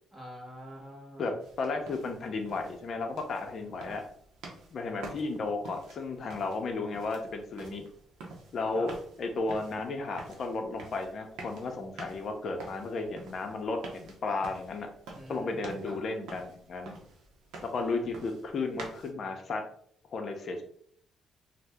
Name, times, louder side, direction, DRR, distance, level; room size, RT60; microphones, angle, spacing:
voice 1, 0.1-1.4 3.9-4.0 8.7-8.9 15.2-15.5 15.8-15.9 17.7-18.0, equal, 5° right, -3 dB, 0.9 m, -46 dB
sound 1, 1.4-19.1, right 3 dB, 90° right, 0.6 m, -49 dB
voice 2, 1.6-4.0 4.7-7.9 8.5-8.9 9.2-14.9 15.3-16.9 17.7-19.6 20.1-20.6, left 3 dB, 55° left, 4 dB, 0.6 m, -34 dB
2.7 x 2.1 x 3.4 m, 0.63 s
cardioid pair, 90°, 0 cm